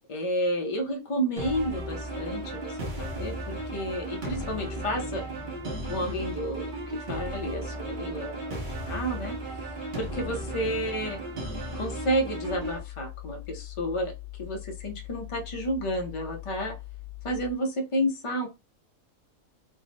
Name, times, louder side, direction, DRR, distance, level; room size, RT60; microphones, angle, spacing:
voice 1, 0.1-5.2 5.9-6.7 7.1-9.3 10.0-11.2 11.7-14.1 14.4-16.8 17.2-18.5, equal, 50° left, 3 dB, 0.4 m, -31 dB
sound 1, 1.4-12.8, right 1 dB, 50° right, 0.7 m, -35 dB
sound 2, 12.4-17.5, left 19 dB, 85° right, 1.1 m, -42 dB
3.4 x 2.0 x 2.6 m, 0.26 s
omnidirectional pair, 1.5 m